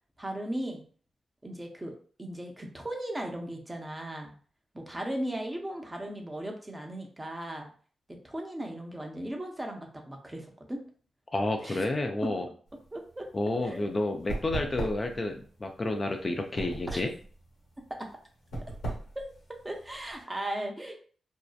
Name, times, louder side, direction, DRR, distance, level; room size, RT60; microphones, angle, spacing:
voice 1, 0.2-0.8 1.4-4.3 4.7-7.7 8.2-10.8 11.6-11.8 12.2-12.3 12.9-13.3 13.6-13.8 16.9-17.0 19.2-19.3 19.6-21.0, right 1 dB, 20° right, 2 dB, 0.7 m, -37 dB
voice 2, 11.3-12.5 13.3-17.1, left 2 dB, 40° left, 4 dB, 0.4 m, -30 dB
sound 1, 12.7-20.2, right 2 dB, 85° left, 1.0 m, -39 dB
2.6 x 2.1 x 2.3 m, 0.42 s
supercardioid pair, 45°, 0 cm